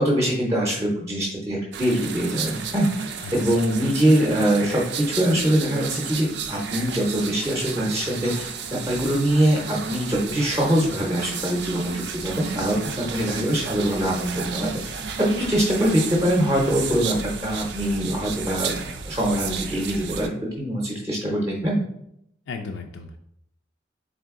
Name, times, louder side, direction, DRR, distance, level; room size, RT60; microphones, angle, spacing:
voice 1, 0.0-3.0 3.3-18.8 19.0-20.3 20.6-21.8, right 1 dB, 15° right, -2 dB, 0.6 m, -23 dB
sound 1, 1.7-20.3, right 6 dB, 65° right, 0.4 m, -33 dB
voice 2, 3.2-3.5 22.5-23.2, left 4 dB, 85° left, 4 dB, 0.4 m, -35 dB
3.7 x 3.3 x 3.6 m, 0.75 s
head